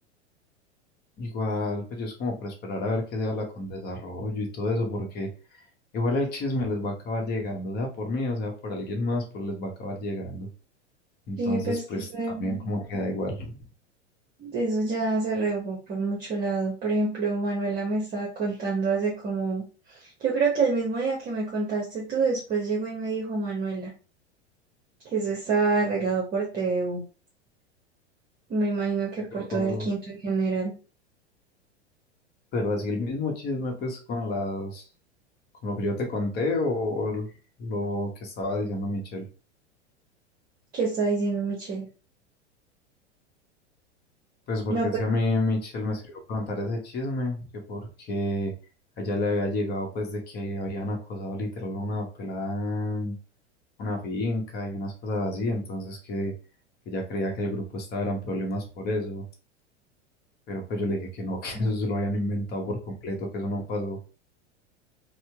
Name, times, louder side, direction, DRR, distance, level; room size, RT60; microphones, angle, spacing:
voice 1, 1.2-5.6 5.9-10.5 11.3-12.1 12.4-13.6 29.3-29.9 32.5-34.8 35.6-37.3 37.6-39.3 44.5-48.5 49.0-53.1 53.8-56.3 56.9-59.2 60.5-64.0, left 1 dB, 25° left, 2 dB, 1.2 m, -30 dB
voice 2, 11.4-11.8 12.1-12.6 14.4-19.6 19.9-23.9 25.0-27.0 28.5-30.7 40.7-41.9 44.7-44.9 61.5-61.7, right 3 dB, 25° right, -2 dB, 1.1 m, -27 dB
4.4 x 2.3 x 3.4 m, 0.34 s
figure-of-eight pair, 90°, 35 cm